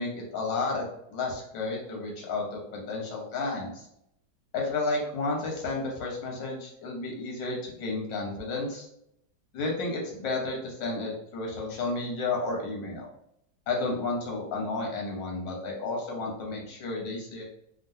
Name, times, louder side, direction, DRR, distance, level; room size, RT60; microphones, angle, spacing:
voice 1, 0.0-3.9 4.5-8.9 9.5-13.1 13.7-17.4, left 3 dB, 90° left, -1 dB, 1.6 m, -32 dB
3.7 x 2.2 x 2.6 m, 0.75 s
omnidirectional pair, 1.9 m